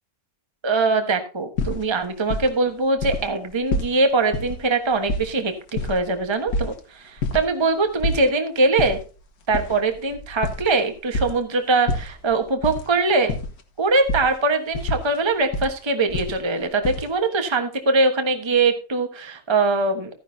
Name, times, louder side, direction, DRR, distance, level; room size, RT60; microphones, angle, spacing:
voice 1, 0.6-9.0 9.5-13.3 13.8-20.1, right 3 dB, 20° right, 6 dB, 1.2 m, -22 dB
sound 1, 1.6-2.7 3.0-3.3 3.5-3.9 4.3-4.6 4.9-6.8 7.2-7.4 7.7-8.3 8.7-9.0 9.5-11.4 11.9-12.8 13.1-13.6 14.1-14.3 14.7-15.7 16.1-17.1, left 2 dB, 80° left, 2.0 m, -27 dB
14.0 x 10.5 x 2.7 m, 0.35 s
omnidirectional pair, 1.6 m